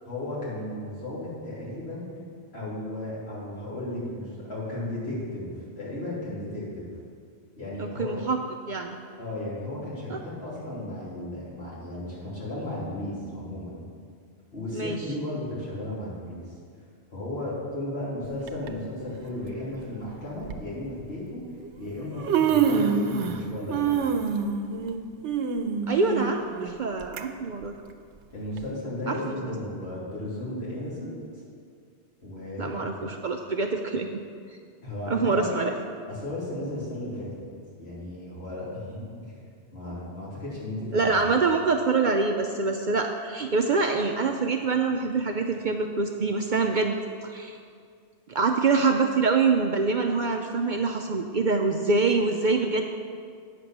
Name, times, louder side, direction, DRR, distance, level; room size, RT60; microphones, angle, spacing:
voice 1, 0.0-2.1 2.5-5.5 5.8-6.9 7.6-8.1 9.2-13.8 14.5-16.4 17.1-21.4 21.8-24.1 28.3-31.2 32.2-32.9 34.8-35.5 36.1-37.3 37.8-39.0 39.7-41.4, left 1 dB, 65° left, -8 dB, 3.3 m, -34 dB
voice 2, 7.8-8.4 8.7-9.0 10.1-10.2 14.7-15.0 25.9-27.7 29.1-29.4 29.6-29.7 32.6-34.2 35.1-35.7 40.9-47.6 48.3-52.9, right 4 dB, 55° right, 3 dB, 0.6 m, -25 dB
Human voice, 18.5-18.7 19.7-19.8 20.4-20.6 21.6-21.7 22.0-23.4 23.7-27.2 27.6-27.7 28.6-28.7, right 6 dB, 90° right, 0.9 m, -26 dB
9.2 x 6.8 x 6.0 m, 2.2 s
omnidirectional pair, 1.2 m